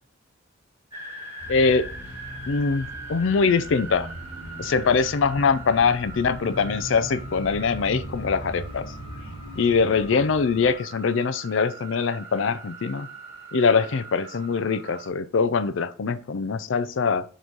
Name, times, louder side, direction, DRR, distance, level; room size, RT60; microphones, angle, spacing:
sound 1, 0.9-15.1, right 2 dB, 15° right, 1.5 m, -42 dB
sound 2, 1.4-10.7, equal, 55° left, 2.3 m, -39 dB
voice 1, 1.5-1.9 2.5-4.1 4.6-8.9 9.6-13.1 13.5-17.2, left 5 dB, 70° left, 13 dB, 0.5 m, -23 dB
6.4 x 3.1 x 5.2 m, 0.41 s
head